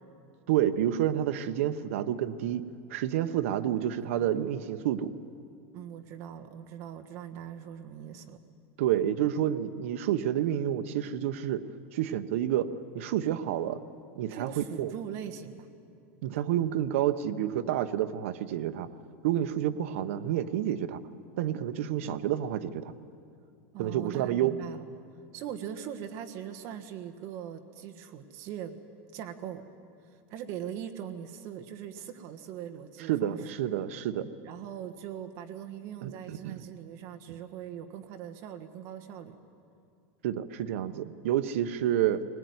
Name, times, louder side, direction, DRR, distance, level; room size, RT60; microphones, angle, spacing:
voice 1, 0.5-2.6 2.9-5.1 8.8-11.7 11.9-13.8 14.2-14.9 16.2-18.9 19.2-21.0 21.4-22.9 23.8-24.5 33.1-34.3 36.0-36.6 40.2-42.2, right 11 dB, 65° right, 9 dB, 1.0 m, -29 dB
voice 2, 5.7-8.4 14.3-15.7 23.7-24.9 25.3-28.8 29.1-29.6 30.3-33.5 34.4-39.3, right 9 dB, 35° right, 6 dB, 1.4 m, -41 dB
20.0 x 19.5 x 9.6 m, 2.4 s
supercardioid pair, 170°, 8 cm